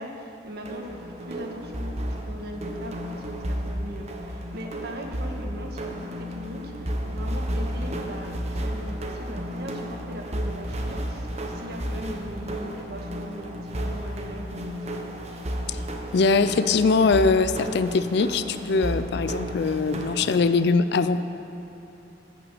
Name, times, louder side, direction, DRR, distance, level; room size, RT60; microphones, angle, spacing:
voice 1, 0.0-15.1, equal, 60° right, 1 dB, 1.4 m, -39 dB
sound 1, 0.6-20.4, equal, 40° right, 0.9 m, -32 dB
voice 2, 16.1-21.2, left 4 dB, 65° left, 12 dB, 0.4 m, -22 dB
14.5 x 6.0 x 6.8 m, 3.0 s
head